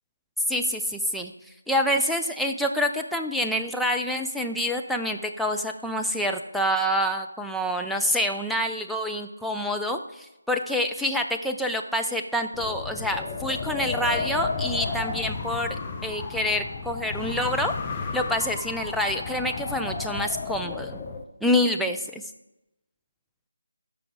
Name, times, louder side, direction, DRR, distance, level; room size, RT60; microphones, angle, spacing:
voice 1, 0.5-1.3 1.7-15.8 16.0-17.7 18.1-21.0 21.4-22.2, equal, ahead, 2 dB, 0.4 m, -27 dB
Wind, 12.5-21.2, left 4 dB, 20° left, 0.8 m, -33 dB
13.5 x 5.3 x 4.7 m, 0.95 s
figure-of-eight pair, 160°, 0 cm